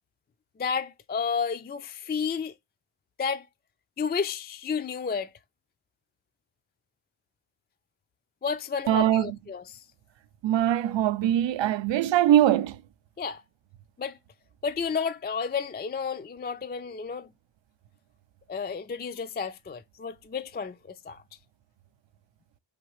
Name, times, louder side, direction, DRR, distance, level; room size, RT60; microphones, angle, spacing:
voice 1, 0.6-2.5 3.2-3.5 4.0-5.3 8.4-9.8 13.2-13.4 14.0-14.2 14.6-17.3 18.5-21.2, left 6 dB, 25° left, 0.3 m, -31 dB
voice 2, 8.9-9.4 10.4-12.8, right 12 dB, 70° right, 0.5 m, -22 dB
4.8 x 3.6 x 3.1 m
cardioid pair, 80°, 47 cm